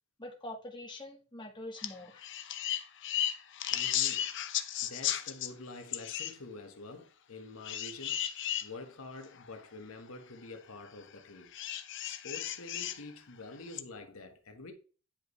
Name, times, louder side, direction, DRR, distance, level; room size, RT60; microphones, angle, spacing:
voice 1, 0.2-2.2, left 1 dB, 20° left, 1.6 m, -44 dB
sound 1, 1.8-1.9 2.2-5.5 5.9-6.3 7.6-8.6 9.4-9.5 11.5-13.0 13.7-13.8, left 11 dB, 55° left, 0.7 m, -34 dB
voice 2, 3.7-8.2 8.6-11.5 12.0-14.7, left 3 dB, 70° left, 1.4 m, -47 dB
10.0 x 5.3 x 3.2 m
head